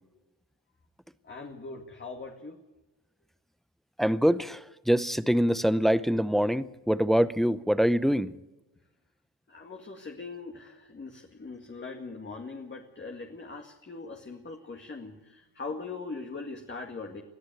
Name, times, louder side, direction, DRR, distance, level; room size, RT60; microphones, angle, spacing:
voice 1, 1.2-2.6 9.5-17.2, left 3 dB, 25° left, 2.1 m, -41 dB
voice 2, 4.0-8.3, equal, ahead, 0.7 m, -24 dB
22.0 x 13.5 x 9.2 m
cardioid pair, 105°, 42 cm